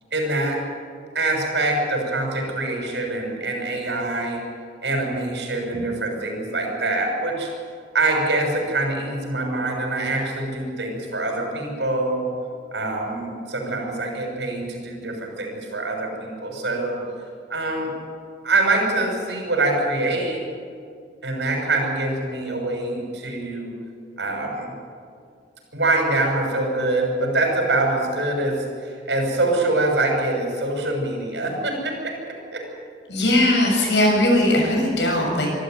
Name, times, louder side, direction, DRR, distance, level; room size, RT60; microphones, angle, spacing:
voice 1, 0.1-0.6 1.1-4.4 4.8-7.5 7.9-12.3 12.7-17.0 17.5-17.9 18.4-20.4 21.2-23.7 24.2-24.7 25.7-32.6, right 2 dB, 85° right, 1 dB, 6.6 m, -24 dB
voice 2, 33.1-35.5, left 1 dB, 80° left, 0 dB, 7.3 m, -19 dB
24.0 x 13.5 x 9.5 m, 2.3 s
head